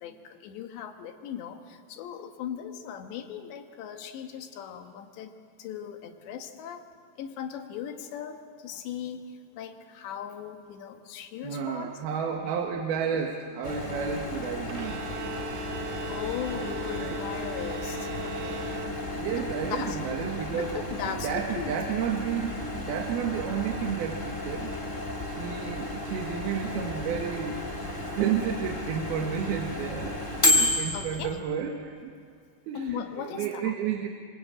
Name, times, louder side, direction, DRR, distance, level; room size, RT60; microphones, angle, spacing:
voice 1, 0.0-5.3 5.6-6.9 7.2-11.9 16.1-18.8 19.3-20.0 20.5-21.7 24.9-25.0 30.9-31.4 32.8-33.8, left 9 dB, 85° left, 6 dB, 3.7 m, -38 dB
voice 2, 11.4-15.0 17.0-17.2 19.1-20.8 21.2-24.7 25.3-27.6 28.2-32.1 32.7-34.1, right 7 dB, 70° right, 2 dB, 3.1 m, -31 dB
Microwave oven, 13.6-31.4, left 1 dB, 15° left, 2.7 m, -32 dB
Bowed string instrument, 14.7-19.4, right 3 dB, 85° right, 3.2 m, -39 dB
27.5 x 24.5 x 8.7 m, 2.2 s
omnidirectional pair, 4.9 m